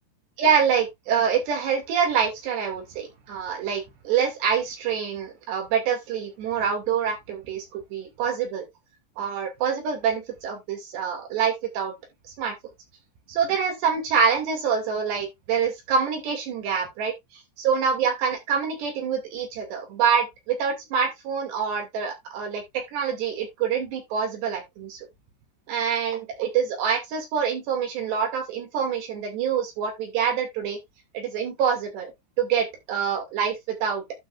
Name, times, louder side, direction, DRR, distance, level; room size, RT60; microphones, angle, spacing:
voice 1, 0.4-8.6 9.2-11.9 12.4-12.5 13.3-17.1 17.6-22.6 22.9-25.1 25.7-30.8 31.1-32.1 32.4-34.0, right 7 dB, 60° right, 4.2 m, -26 dB
12.5 x 5.8 x 2.5 m
omnidirectional pair, 5.9 m